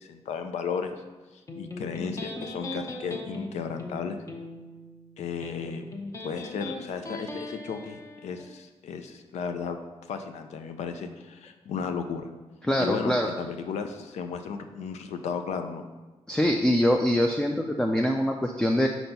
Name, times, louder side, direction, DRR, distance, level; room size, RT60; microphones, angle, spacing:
voice 1, 0.0-1.0 1.6-4.2 5.2-5.8 6.2-9.8 10.1-12.3 12.8-15.9, left 6 dB, 90° left, 7 dB, 0.5 m, -34 dB
Electric guitar, 1.5-8.5, left 2 dB, 30° left, 0.7 m, -39 dB
voice 2, 12.6-13.3 16.3-18.9, equal, 5° left, 2 dB, 0.4 m, -24 dB
4.5 x 4.3 x 5.3 m, 1.2 s
wide cardioid pair, 130°, 11 cm